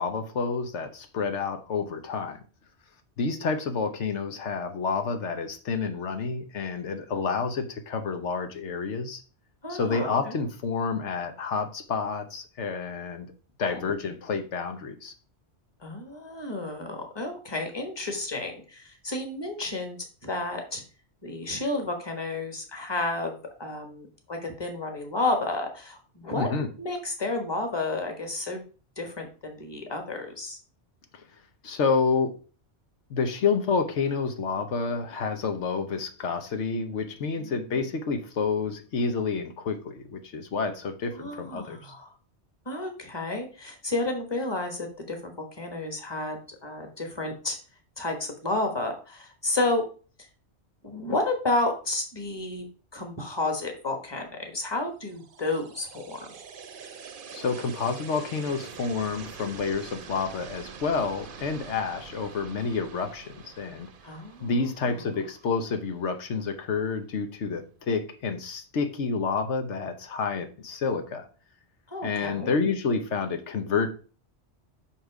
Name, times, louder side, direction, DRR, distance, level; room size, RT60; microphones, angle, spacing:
voice 1, 0.0-2.4 3.2-9.2 9.7-13.3 13.6-15.1 26.3-26.7 31.6-32.3 33.1-41.9 57.3-63.9 64.4-71.3 72.0-73.9, left 5 dB, 85° left, 7 dB, 1.2 m, -29 dB
voice 2, 9.6-10.3 13.6-13.8 15.8-20.8 21.2-26.5 26.8-28.6 29.0-30.6 37.3-37.8 41.1-42.1 42.6-47.6 48.0-49.9 50.8-52.7 52.9-56.3 64.0-65.0 71.9-72.5, left 2 dB, 20° left, 4 dB, 1.4 m, -31 dB
sound 1, 55.0-66.1, right 6 dB, 55° right, 0.9 m, -45 dB
5.9 x 5.8 x 4.8 m, 0.37 s
omnidirectional pair, 1.2 m